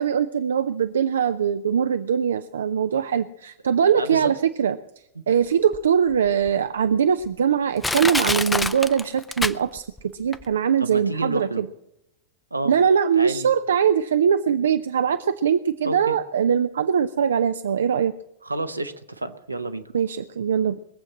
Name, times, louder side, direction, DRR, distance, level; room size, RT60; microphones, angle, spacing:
voice 1, 0.0-4.8 5.3-9.9 10.1-11.7 12.7-18.1 19.9-20.8, right 8 dB, 65° right, 11 dB, 0.5 m, -22 dB
voice 2, 3.9-4.3 10.8-11.6 12.5-12.7 13.1-13.5 15.8-16.2 18.4-19.9, right 2 dB, 85° right, 8 dB, 1.0 m, -29 dB
Crushing, 5.7-5.8 6.5-6.6 7.2-7.3 7.8-10.0 10.3-10.4, left 2 dB, 10° left, 0.6 m, -25 dB
21.5 x 7.7 x 7.3 m, 0.84 s
figure-of-eight pair, 90°, 0 cm